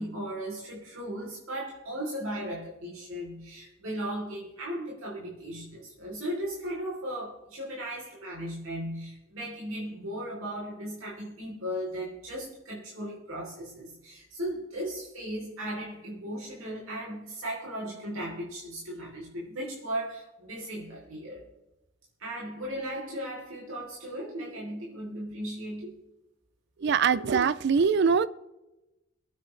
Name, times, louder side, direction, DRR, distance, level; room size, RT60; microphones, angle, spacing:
voice 1, 0.0-21.4 22.2-26.0, equal, 80° right, -4 dB, 3.5 m, -36 dB
voice 2, 26.8-28.3, right 6 dB, 55° right, 17 dB, 0.4 m, -23 dB
23.5 x 9.2 x 3.3 m, 0.98 s
head